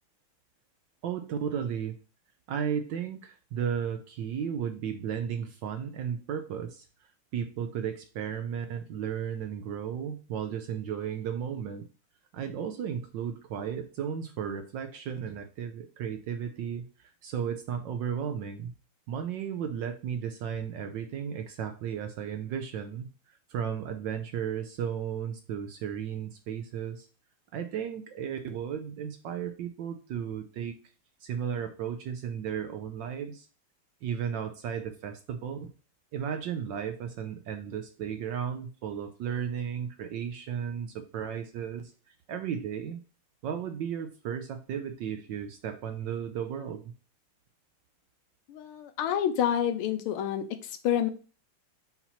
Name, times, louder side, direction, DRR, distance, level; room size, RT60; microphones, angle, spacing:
voice 1, 1.0-1.9 2.5-6.9 7.3-11.9 12.3-18.7 19.1-27.1 27.5-30.7 31.2-33.5 34.0-35.7 36.1-43.0 43.4-46.8, right 8 dB, 75° right, 6 dB, 1.1 m, -34 dB
voice 2, 48.5-51.1, left 10 dB, 80° left, 8 dB, 1.6 m, -28 dB
5.8 x 2.9 x 5.5 m, 0.36 s
omnidirectional pair, 2.4 m